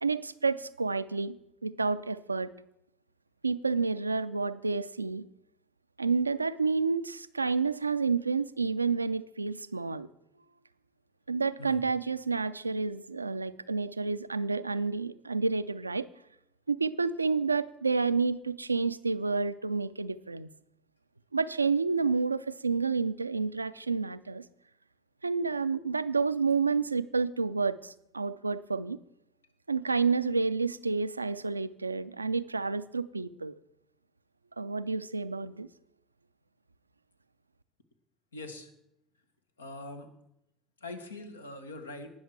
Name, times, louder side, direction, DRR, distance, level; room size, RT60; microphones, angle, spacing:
voice 1, 0.0-2.5 3.4-5.2 6.0-10.1 11.3-16.1 16.7-20.5 21.3-24.4 25.2-29.0 29.7-33.6 34.6-35.7, right 4 dB, 85° right, 15 dB, 0.3 m, -29 dB
voice 2, 38.3-38.7 39.6-40.1 40.8-42.1, left 2 dB, 80° left, 8 dB, 1.0 m, -42 dB
18.5 x 6.4 x 4.6 m, 0.83 s
figure-of-eight pair, 65°, 0 cm